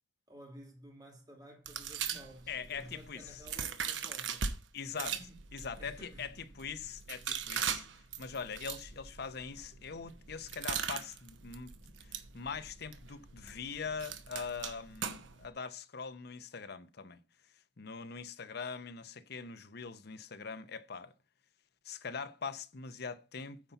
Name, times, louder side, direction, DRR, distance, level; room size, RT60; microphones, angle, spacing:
voice 1, 0.3-4.7 4.9-5.4 5.8-6.2, equal, 20° right, 2.6 m, -53 dB
sound 1, 1.7-4.5 4.9-15.5, right 7 dB, 85° right, 0.9 m, -41 dB
voice 2, 2.5-3.4 4.7-5.1 5.5-7.9 8.2-17.2 17.8-21.1 21.8-23.7, left 5 dB, 60° left, 0.8 m, -42 dB
9.5 x 4.2 x 6.9 m
head